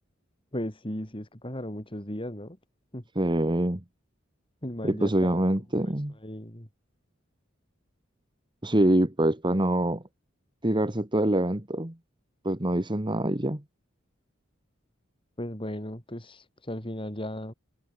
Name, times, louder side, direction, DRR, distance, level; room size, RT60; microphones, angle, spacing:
voice 1, 0.5-2.6 2.9-3.0 4.6-5.4 5.8-5.9 6.2-6.7 15.4-17.5, left 1 dB, 25° left, 4.9 m, -36 dB
voice 2, 3.1-3.8 4.8-6.1 8.6-10.0 10.6-11.9 12.4-13.6, right 1 dB, 25° right, 1.6 m, -25 dB
head